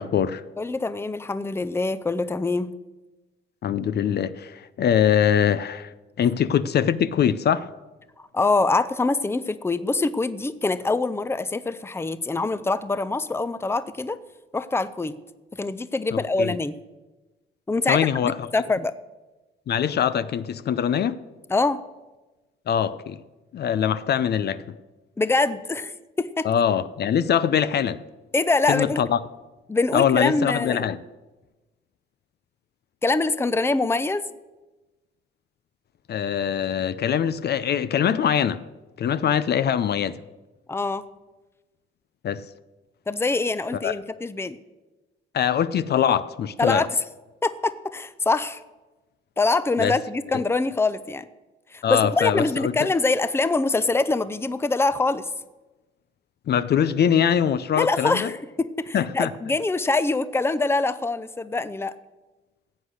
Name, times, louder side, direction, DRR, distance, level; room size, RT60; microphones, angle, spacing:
voice 1, 0.0-0.4 3.6-7.7 16.1-16.6 17.9-18.5 19.7-21.2 22.7-23.2 23.5-24.7 26.4-28.0 28.7-29.2 29.9-31.0 36.1-38.6 39.0-40.2 42.2-42.5 43.8-43.9 45.3-46.9 49.8-50.0 50.3-50.4 51.8-52.7 56.5-58.3 58.9-59.3, left 8 dB, 55° left, 0.6 m, -23 dB
voice 2, 0.6-2.7 8.3-14.2 14.5-15.2 15.5-16.8 17.7-18.9 21.5-21.8 25.2-26.5 28.3-29.0 29.7-30.9 33.0-34.3 40.7-41.1 43.1-44.6 46.6-46.9 47.4-48.6 49.4-51.3 51.7-55.3 57.8-61.9, left 3 dB, 10° left, 0.6 m, -24 dB
15.0 x 8.2 x 6.4 m
cardioid pair, 90°, 20 cm